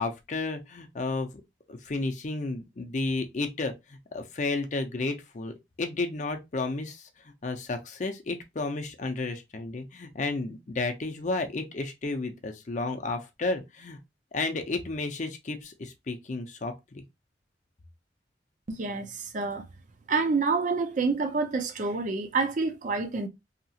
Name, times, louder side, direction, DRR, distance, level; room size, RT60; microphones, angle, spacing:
voice 1, 0.0-1.4 1.7-14.0 14.3-17.0, left 3 dB, 40° left, 0.5 m, -32 dB
voice 2, 18.7-19.7 20.1-23.3, right 4 dB, 45° right, 0.4 m, -28 dB
2.8 x 2.4 x 2.7 m
head